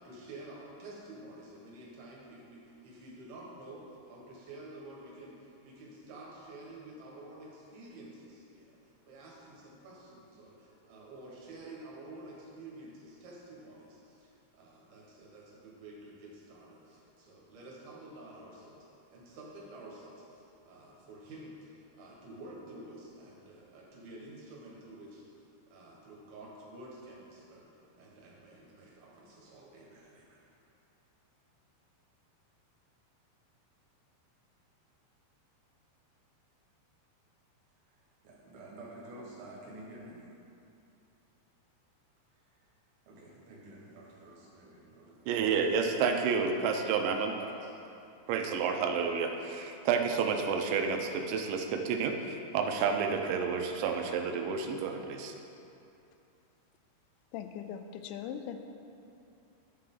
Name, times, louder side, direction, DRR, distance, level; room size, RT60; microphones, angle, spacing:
voice 1, 0.0-25.3 25.7-27.7 27.9-30.4 37.9-40.2 42.5-42.7 43.1-45.1 46.0-46.3 47.4-47.7, right 2 dB, 65° right, -4 dB, 3.1 m, -50 dB
voice 2, 45.3-47.4 48.3-55.4, right 5 dB, 90° right, 4 dB, 3.1 m, -30 dB
voice 3, 57.3-58.6, left 9 dB, 85° left, 7 dB, 2.8 m, -40 dB
11.5 x 7.6 x 3.8 m, 2.7 s
omnidirectional pair, 5.2 m